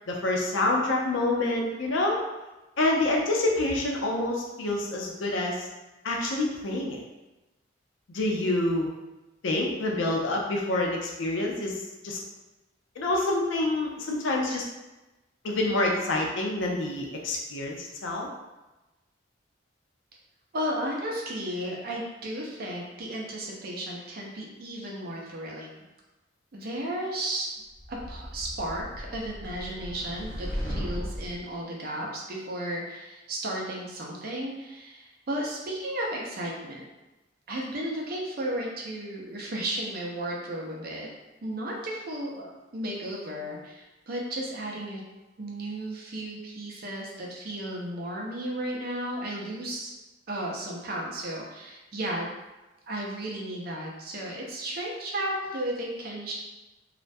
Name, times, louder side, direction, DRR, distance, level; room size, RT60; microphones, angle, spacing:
voice 1, 0.1-2.2 2.8-5.7 6.0-7.0 8.1-8.9 9.4-11.8 12.0-12.2 13.0-14.6 15.4-18.3, left 2 dB, 85° left, 0 dB, 0.5 m, -27 dB
voice 2, 20.5-25.7 26.5-27.5 27.9-36.9 37.5-41.1 41.4-45.0 45.4-49.9 50.3-52.3 52.9-56.3, right 1 dB, 50° right, -2 dB, 0.5 m, -34 dB
sound 1, 27.8-31.4, equal, 20° left, 0.4 m, -36 dB
2.3 x 2.1 x 2.5 m, 1.1 s
head